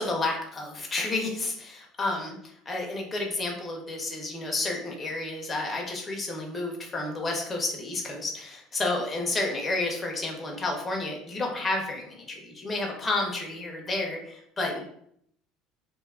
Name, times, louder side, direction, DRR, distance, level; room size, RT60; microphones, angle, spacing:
voice 1, 0.0-14.8, left 2 dB, 15° left, 0 dB, 0.5 m, -31 dB
2.5 x 2.3 x 3.4 m, 0.69 s
cardioid pair, 155°, 0 cm